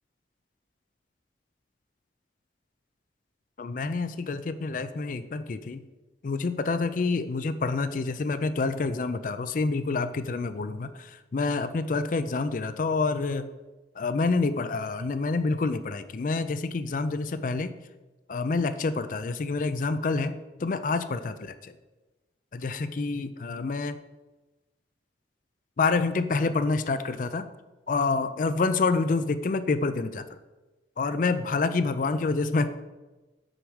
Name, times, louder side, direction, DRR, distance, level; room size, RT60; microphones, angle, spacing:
voice 1, 3.6-5.9 6.2-13.5 14.0-17.7 18.3-20.3 20.6-21.7 22.5-24.0 25.8-27.5 27.9-30.3 31.0-32.7, left 3 dB, 45° left, 12 dB, 0.4 m, -27 dB
6.2 x 4.8 x 6.3 m, 1.1 s
head